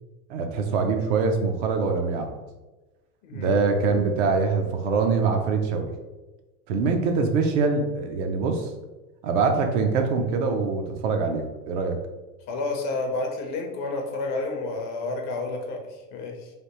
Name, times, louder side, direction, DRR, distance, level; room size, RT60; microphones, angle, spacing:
voice 1, 0.3-2.3 3.3-5.9 6.7-8.7 9.2-12.0, right 4 dB, 50° right, 4 dB, 0.6 m, -24 dB
voice 2, 3.2-3.6 12.5-16.5, left 3 dB, 35° left, 2 dB, 0.6 m, -30 dB
3.4 x 2.4 x 2.8 m, 1.1 s
hypercardioid pair, 110°, 48 cm